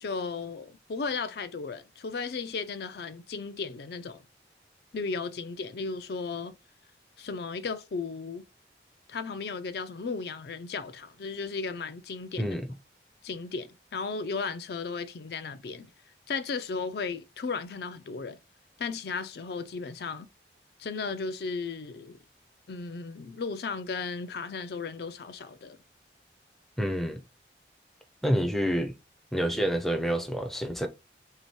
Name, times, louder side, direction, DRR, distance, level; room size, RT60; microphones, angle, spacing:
voice 1, 0.0-4.2 4.9-6.6 7.2-8.4 9.1-12.5 13.2-15.9 16.3-18.4 18.8-20.3 20.8-22.2 22.7-25.8, left 4 dB, 60° left, 0.4 m, -35 dB
voice 2, 12.4-12.7 26.8-27.2 28.2-29.0 29.3-30.9, equal, ahead, 0.5 m, -28 dB
3.6 x 2.8 x 4.5 m
head